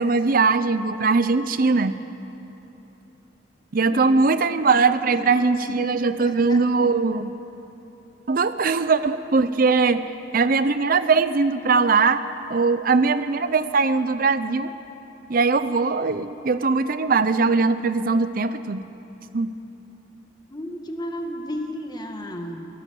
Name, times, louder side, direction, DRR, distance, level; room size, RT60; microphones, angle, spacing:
voice 1, 0.0-2.0 3.7-7.3 8.3-10.0 10.3-12.2 12.5-14.7 15.3-18.8 19.3-19.5, right 4 dB, 50° right, 12 dB, 0.6 m, -20 dB
voice 2, 3.9-4.2 5.0-5.4 5.6-5.8 6.2-6.7 20.5-22.7, equal, 20° left, 4 dB, 1.7 m, -33 dB
23.5 x 17.5 x 7.7 m, 3.0 s
head